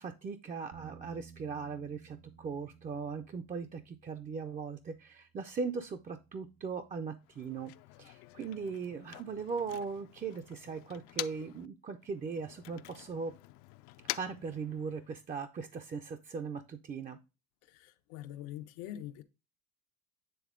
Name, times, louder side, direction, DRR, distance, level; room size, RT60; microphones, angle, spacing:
voice 1, 0.0-7.7 8.0-13.3 14.1-17.2, right 5 dB, 20° right, 0.4 m, -39 dB
Bass guitar, 0.7-7.0, right 6 dB, 75° right, 1.6 m, -58 dB
Motor vehicle (road), 7.2-11.7 12.0-15.2, left 18 dB, 65° left, 0.6 m, -46 dB
voice 2, 17.7-19.2, left 12 dB, 90° left, 1.0 m, -44 dB
9.3 x 3.4 x 3.6 m
cardioid pair, 130°, 42 cm